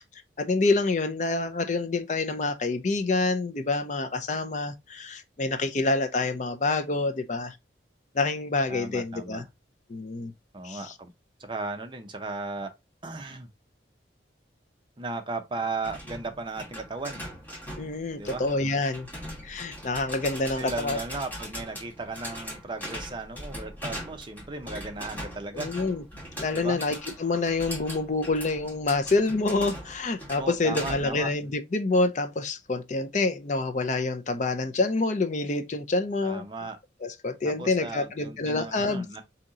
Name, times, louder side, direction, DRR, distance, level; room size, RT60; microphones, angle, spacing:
voice 1, 0.4-7.6 8.1-9.4 9.9-10.3 10.6-10.8 17.8-19.1 19.4-21.0 25.5-26.0 26.4-36.4 37.0-39.0, left 3 dB, 40° left, 0.5 m, -27 dB
voice 2, 8.7-9.4 10.5-11.1 11.4-12.7 13.0-13.5 15.0-17.2 18.1-18.5 20.6-25.7 26.5-26.8 30.3-31.3 36.2-36.8 37.4-39.2, right 3 dB, 25° right, 0.6 m, -36 dB
sound 1, 15.8-31.3, equal, 10° left, 1.3 m, -40 dB
4.1 x 2.8 x 3.7 m
head